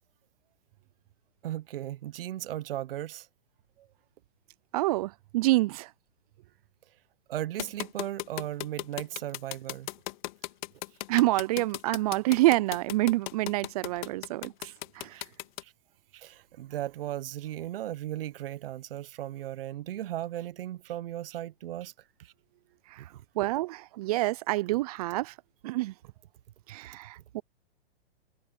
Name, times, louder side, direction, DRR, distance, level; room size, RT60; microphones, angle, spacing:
voice 1, 1.4-3.3 7.3-9.9 11.3-11.4 14.6-14.7 15.1-15.2 15.6-15.7 16.1-21.9 22.2-22.3 23.0-23.1, right 13 dB, 60° right, 0.9 m, -36 dB
voice 2, 4.7-5.9 11.1-14.5 23.4-25.3 25.6-25.9 26.7-27.4, right 19 dB, 40° right, 0.5 m, -27 dB
sound 1, 7.6-15.6, left 18 dB, 50° left, 1.8 m, -36 dB
hypercardioid pair, 130°, 31 cm